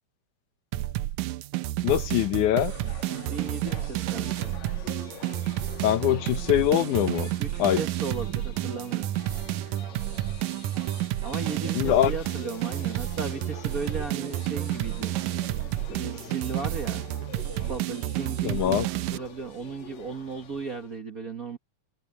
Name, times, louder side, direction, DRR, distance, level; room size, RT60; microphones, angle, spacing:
sound 1, 0.7-19.2, right 15 dB, 90° right, 2.1 m, -30 dB
voice 1, 1.8-2.7 5.8-7.3 7.6-7.8 11.8-12.1 18.4-18.9, left 12 dB, 85° left, 2.5 m, -23 dB
sound 2, 2.7-21.0, left 5 dB, 65° left, 3.7 m, -45 dB
voice 2, 3.1-4.6 7.4-9.1 11.2-15.1 15.9-17.1 17.5-21.6, right 4 dB, 45° right, 1.2 m, -36 dB
omnidirectional pair, 3.4 m